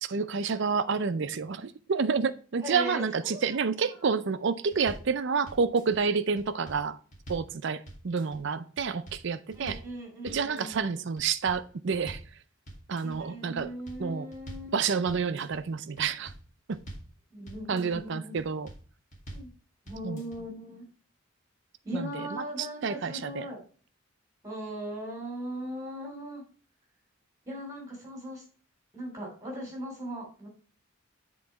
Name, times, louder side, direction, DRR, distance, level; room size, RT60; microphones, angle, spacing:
voice 1, 0.0-7.0 7.3-9.8 10.2-12.2 12.9-13.7 14.0-14.3 14.7-16.3 16.7-16.8 17.7-18.7 20.0-20.2 21.9-23.5, right 5 dB, 55° right, 0.5 m, -29 dB
voice 2, 2.6-3.4 3.9-4.0 9.5-11.0 13.0-14.8 17.3-18.4 19.3-19.5 19.8-20.8 21.8-23.6 24.4-26.4 27.4-28.4 28.9-30.5, equal, 15° right, 3.0 m, -39 dB
sound 1, 4.7-5.1 5.5-6.0 6.4-7.5 7.9-8.4 8.8-9.2 9.5-9.9 10.3-10.8 11.2-12.3 12.7-13.2 13.6-14.7 15.1-15.6 16.0-17.1 17.5-18.0 18.4-18.8 19.1-19.5 19.9-20.4, right 1 dB, 35° left, 2.1 m, -45 dB
7.5 x 3.8 x 4.5 m
head